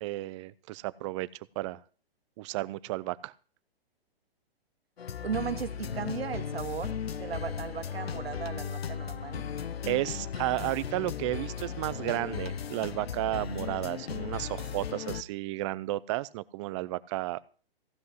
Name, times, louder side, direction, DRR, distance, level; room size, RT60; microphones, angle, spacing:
voice 1, 0.0-1.3 1.6-1.8 2.4-3.3 9.9-17.4, right 18 dB, 30° right, 18 dB, 0.5 m, -33 dB
sound 1, 5.0-15.2, left 7 dB, 80° left, 0.9 m, -36 dB
voice 2, 5.2-9.4, right 7 dB, 75° right, 9 dB, 1.7 m, -36 dB
15.0 x 5.5 x 9.6 m, 0.40 s
hypercardioid pair, 130°, 30 cm